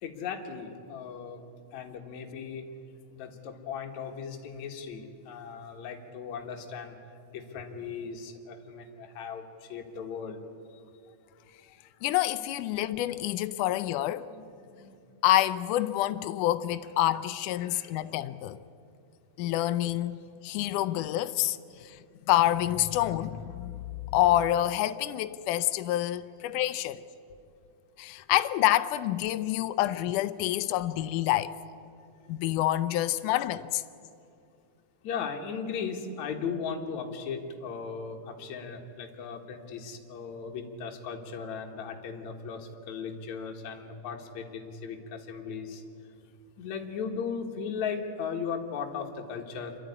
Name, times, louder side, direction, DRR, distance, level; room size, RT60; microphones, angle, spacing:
voice 1, 0.0-1.4 1.7-2.6 3.1-6.9 7.3-9.4 9.7-10.4 14.3-14.5 14.7-15.0 16.8-17.2 17.6-17.9 35.0-45.8 46.6-49.8, left 6 dB, 60° left, 2.7 m, -37 dB
voice 2, 12.0-14.3 15.2-18.6 19.4-20.2 20.4-21.6 21.8-22.0 22.3-23.8 24.1-27.0 28.0-31.5 32.3-33.8, left 13 dB, 80° left, 2.0 m, -27 dB
26.5 x 12.0 x 9.6 m
omnidirectional pair, 3.9 m